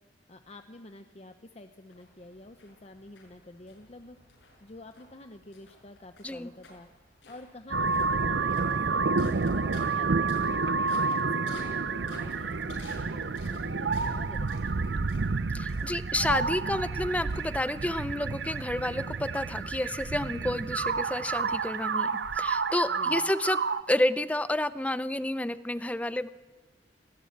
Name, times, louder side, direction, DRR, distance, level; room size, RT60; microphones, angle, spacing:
voice 1, 0.3-4.2 4.6-6.9 7.3-15.3 22.9-23.3, left 2 dB, 35° left, 7 dB, 0.8 m, -48 dB
sound 1, 1.9-19.6, left 2 dB, 85° left, 6.4 m, -55 dB
sound 2, 7.7-23.8, right 4 dB, 70° right, 0.7 m, -29 dB
voice 2, 15.5-23.6 23.9-26.3, left 1 dB, 10° left, 14 dB, 0.6 m, -30 dB
20.0 x 17.0 x 8.6 m, 1.2 s
head